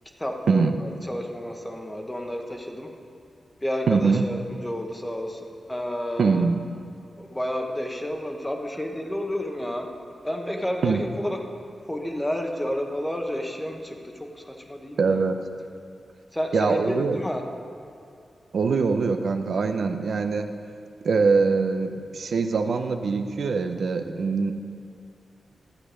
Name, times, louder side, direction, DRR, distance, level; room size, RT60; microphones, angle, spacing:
voice 1, 0.2-2.9 3.6-6.4 7.2-9.9 10.2-11.4 11.9-15.2 16.3-17.4, equal, 10° left, 3 dB, 0.9 m, -30 dB
voice 2, 3.9-4.2 6.2-6.6 10.8-11.0 15.0-15.4 16.5-17.2 18.5-20.5 21.0-24.5, right 4 dB, 65° right, 6 dB, 0.6 m, -23 dB
11.5 x 8.5 x 5.0 m, 2.6 s
wide cardioid pair, 165°, 0 cm